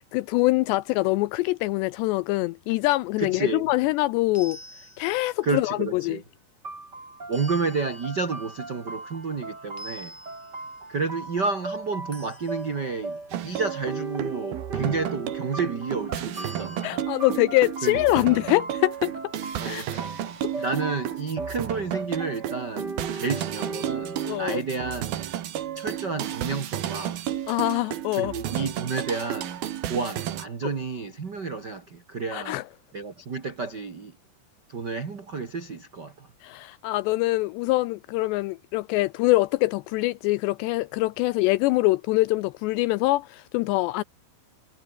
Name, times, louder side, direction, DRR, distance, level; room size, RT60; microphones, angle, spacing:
voice 1, 0.1-4.6 5.0-6.2 16.8-19.1 19.6-20.0 24.2-24.6 27.5-28.3 32.3-32.6 36.4-44.0, left 20 dB, 85° left, 2.5 m, -24 dB
voice 2, 3.2-3.7 5.4-6.2 7.3-10.2 10.9-17.0 17.8-18.2 19.6-19.9 20.6-25.2 25.7-27.2 28.1-32.6 32.9-34.1 34.7-36.3, right 4 dB, 90° right, 0.9 m, -31 dB
sound 1, 4.3-5.5 7.3-9.4 9.8-11.0 12.1-13.2 16.3-16.9, equal, 5° left, 5.7 m, -47 dB
sound 2, 6.6-24.4, right 2 dB, 20° right, 6.6 m, -39 dB
sound 3, 13.3-30.4, right 11 dB, 60° right, 3.2 m, -32 dB
omnidirectional pair, 5.4 m